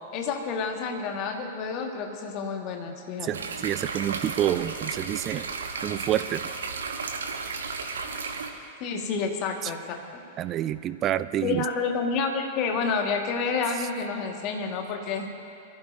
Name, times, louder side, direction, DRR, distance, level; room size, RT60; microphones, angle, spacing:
voice 1, 0.1-3.3 8.8-10.0 11.4-15.3, left 5 dB, 40° left, 3 dB, 1.8 m, -29 dB
voice 2, 3.2-5.5 5.8-6.5 9.6-9.7 10.4-11.6, right 12 dB, 30° right, 15 dB, 0.4 m, -28 dB
sound 1, 3.3-8.5, right 4 dB, 65° right, 1.1 m, -34 dB
23.5 x 15.0 x 2.7 m, 2.7 s
figure-of-eight pair, 95°, 0 cm